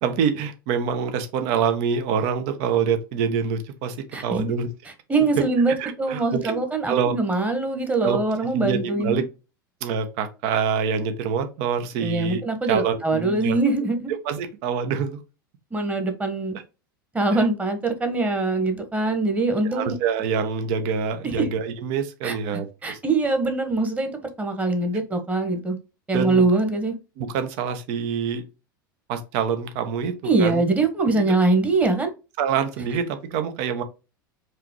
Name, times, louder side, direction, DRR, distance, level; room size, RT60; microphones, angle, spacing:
voice 1, 0.0-4.7 5.8-6.6 6.9-7.1 8.0-8.2 8.5-9.2 9.8-12.4 12.7-13.6 14.1-15.2 17.3-17.5 19.7-23.0 26.1-26.5 27.2-28.4 29.1-30.6 31.1-31.3 32.4-33.8, right 6 dB, 55° right, 1.0 m, -26 dB
voice 2, 4.1-4.5 5.1-9.2 12.0-14.0 15.7-16.6 17.1-20.0 21.2-21.5 22.2-25.8 26.1-26.9 30.2-32.1, right 3 dB, 15° right, 1.3 m, -23 dB
4.9 x 3.1 x 3.0 m
hypercardioid pair, 85°, 11 cm